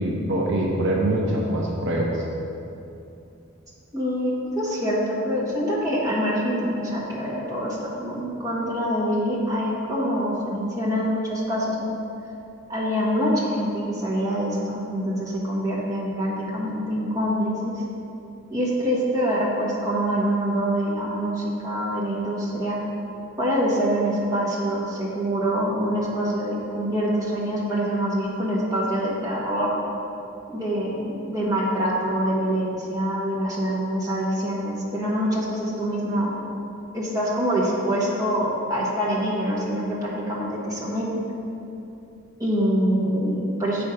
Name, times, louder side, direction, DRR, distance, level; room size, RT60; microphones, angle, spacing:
voice 1, 0.0-2.2, right 1 dB, 55° right, -2 dB, 0.7 m, -24 dB
voice 2, 3.9-11.9 12.7-17.8 18.5-22.8 23.4-29.7 30.5-36.4 36.9-41.1 42.4-43.8, equal, 15° right, -7 dB, 1.4 m, -25 dB
8.3 x 4.3 x 5.1 m, 2.7 s
head